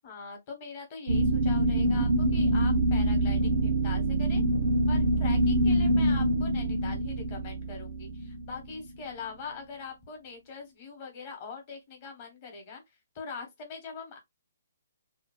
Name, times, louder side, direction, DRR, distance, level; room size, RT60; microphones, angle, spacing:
voice 1, 0.0-4.4 4.9-12.8 13.1-14.2, left 5 dB, 30° left, 0.9 m, -42 dB
sound 1, 1.1-9.0, right 1 dB, 85° right, 0.5 m, -25 dB
2.7 x 2.1 x 2.3 m
hypercardioid pair, 170°, 0 cm